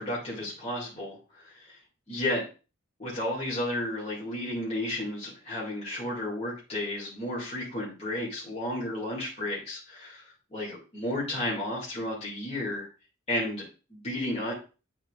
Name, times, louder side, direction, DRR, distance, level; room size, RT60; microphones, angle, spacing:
voice 1, 0.0-1.8 2.1-2.4 3.0-12.9 13.3-14.5, left 1 dB, 30° left, -6 dB, 2.1 m, -33 dB
9.2 x 4.5 x 2.4 m, 0.33 s
head